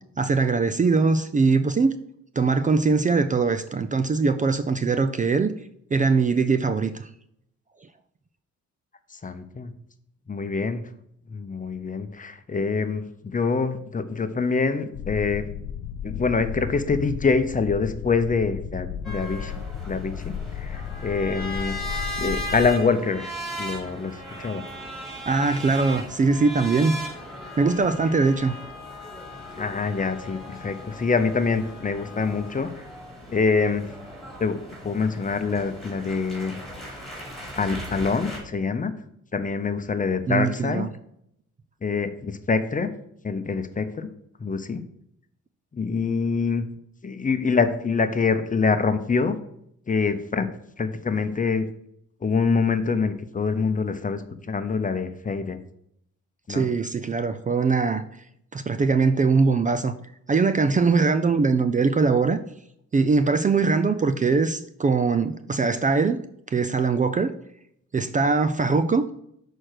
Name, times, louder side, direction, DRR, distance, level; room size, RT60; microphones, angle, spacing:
voice 1, 0.2-2.0 2.4-5.5 5.9-7.1 25.3-27.0 27.6-28.6 40.3-40.9 56.5-58.0 58.5-59.9 60.3-62.4 62.9-66.2 66.5-67.3 67.9-69.1, right 4 dB, 25° right, 0.5 m, -21 dB
voice 2, 9.2-9.7 10.3-10.8 11.3-15.4 16.0-19.5 19.9-21.8 22.2-23.3 23.6-24.6 29.6-32.7 33.3-33.9 34.4-36.6 37.6-38.9 39.3-40.8 41.8-42.9 43.2-44.1 44.4-44.8 45.7-46.6 47.0-49.4 49.9-50.5 50.8-51.6 52.2-55.6 56.5-56.7, left 4 dB, 25° left, 0.8 m, -25 dB
sound 1, 14.9-22.7, left 8 dB, 70° left, 0.6 m, -34 dB
sound 2, 19.0-38.4, equal, ahead, 2.9 m, -37 dB
6.4 x 4.5 x 6.4 m
cardioid pair, 90°, 30 cm